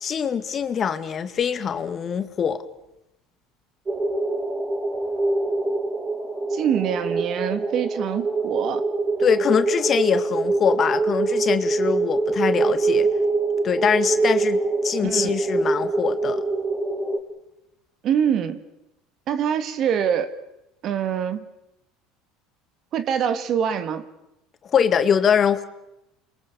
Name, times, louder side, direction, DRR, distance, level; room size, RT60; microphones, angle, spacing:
voice 1, 0.0-2.6 9.2-13.1 13.6-16.4 24.7-25.6, left 7 dB, 40° left, 10 dB, 2.1 m, -23 dB
sound 1, 3.9-17.2, right 3 dB, 25° right, 5.4 m, -24 dB
voice 2, 6.5-8.8 15.0-15.3 18.0-18.6 19.3-20.4 20.8-21.5 22.9-24.1, right 8 dB, 50° right, 11 dB, 2.3 m, -24 dB
29.0 x 22.5 x 7.0 m, 0.91 s
supercardioid pair, 100°, 0 cm